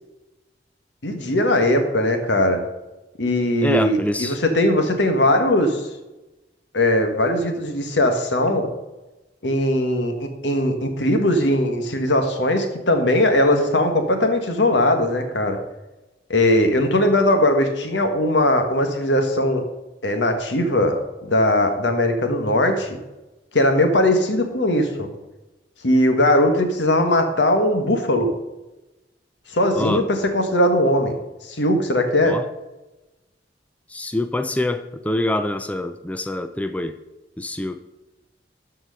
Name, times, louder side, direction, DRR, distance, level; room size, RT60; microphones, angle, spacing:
voice 1, 1.0-2.6 3.2-5.9 6.7-8.7 9.4-15.6 16.3-19.6 20.0-23.0 23.5-25.1 25.8-28.3 29.5-31.2 31.4-32.4, left 1 dB, 85° left, 6 dB, 1.4 m, -19 dB
voice 2, 3.6-4.4 29.8-30.0 32.2-32.4 33.9-37.0 37.4-37.8, left 1 dB, 10° left, 9 dB, 0.4 m, -25 dB
12.5 x 4.6 x 5.7 m, 1.0 s
head